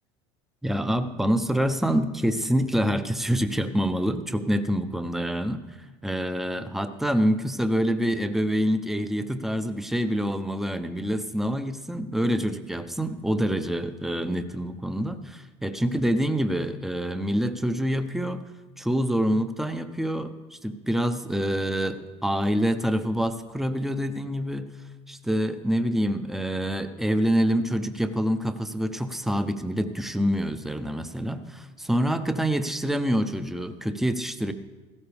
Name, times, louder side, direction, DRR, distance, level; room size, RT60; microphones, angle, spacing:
voice 1, 0.6-5.8 6.0-18.4 18.8-24.7 25.1-34.5, equal, ahead, 10 dB, 0.8 m, -26 dB
15.0 x 13.0 x 3.5 m, 1.2 s
hypercardioid pair, 75°, 16 cm